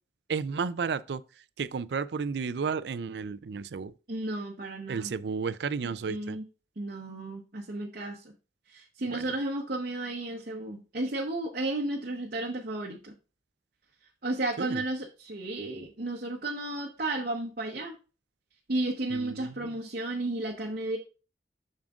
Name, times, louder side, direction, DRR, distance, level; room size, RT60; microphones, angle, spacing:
voice 1, 0.3-1.2 1.6-3.9 4.9-6.4 9.1-9.3 14.6-14.8 19.1-19.8, right 5 dB, 70° right, 0.4 m, -33 dB
voice 2, 4.1-5.1 5.8-6.4 6.8-8.2 8.7-13.1 14.2-17.9 18.7-21.0, right 2 dB, 55° right, 0.9 m, -33 dB
7.2 x 6.5 x 2.4 m
head